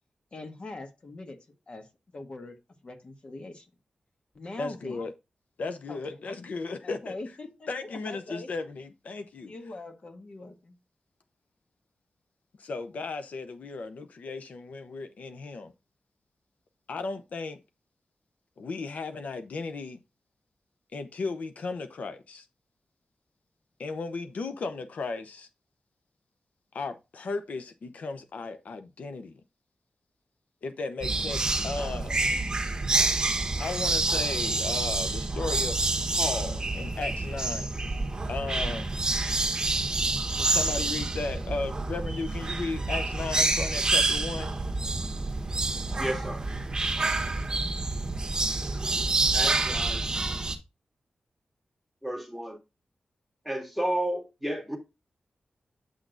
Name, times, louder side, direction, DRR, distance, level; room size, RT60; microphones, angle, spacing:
voice 1, 0.3-1.4 1.7-1.9 2.1-2.6 2.8-3.7 4.3-5.0 5.9-6.2 6.8-8.5 9.4-10.8, left 2 dB, 45° left, 1.4 m, -42 dB
voice 2, 4.6-5.1 5.6-7.1 7.7-9.5 12.6-15.7 16.9-17.6 18.6-20.0 20.9-22.5 23.8-25.5 26.7-29.4 30.6-32.2 33.6-35.8 36.1-37.7 38.2-38.9 40.3-44.5, left 3 dB, 75° left, 0.8 m, -35 dB
sound 1, 31.0-50.6, right 2 dB, 30° right, 1.3 m, -28 dB
voice 3, 46.0-46.4 49.3-50.1 52.0-52.6 53.5-54.8, right 1 dB, ahead, 1.8 m, -32 dB
8.6 x 6.1 x 2.5 m
wide cardioid pair, 130°, 3 cm